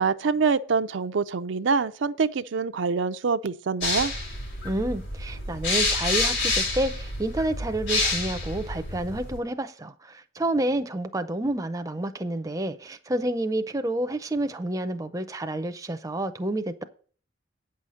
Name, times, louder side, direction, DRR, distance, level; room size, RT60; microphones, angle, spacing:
voice 1, 0.0-4.1, right 5 dB, 70° right, 0.5 m, -25 dB
sound 1, 3.8-9.4, left 3 dB, 65° left, 3.7 m, -28 dB
voice 2, 4.6-16.8, right 1 dB, 15° right, 0.6 m, -29 dB
8.9 x 5.7 x 6.4 m
head